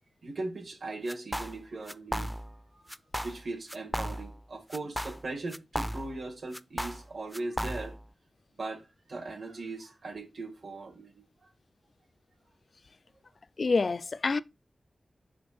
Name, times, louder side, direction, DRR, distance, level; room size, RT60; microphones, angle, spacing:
voice 1, 0.2-2.4 2.7-2.9 3.2-7.9 8.6-11.2, right 2 dB, 75° right, 2.3 m, -39 dB
sound 1, 1.1-1.6 1.9-2.6 2.9-3.4 3.7-4.4 4.7-6.2 6.5-8.0, equal, ahead, 0.4 m, -35 dB
voice 2, 13.6-14.4, left 4 dB, 60° left, 0.4 m, -27 dB
6.2 x 5.1 x 4.3 m
wide cardioid pair, 80°, 0 cm